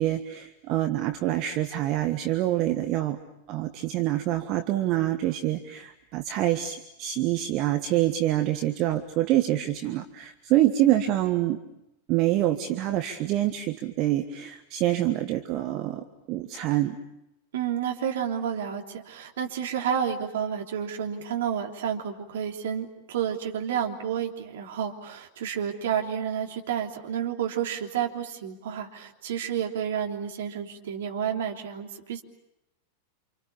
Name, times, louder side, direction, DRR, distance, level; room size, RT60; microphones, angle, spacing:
voice 1, 0.0-3.2 3.5-11.6 12.1-17.0, right 14 dB, 40° right, 7 dB, 1.4 m, -26 dB
voice 2, 17.5-32.2, right 8 dB, 60° right, 2 dB, 3.3 m, -30 dB
29.0 x 27.5 x 7.0 m, 0.86 s
figure-of-eight pair, 90°, 0 cm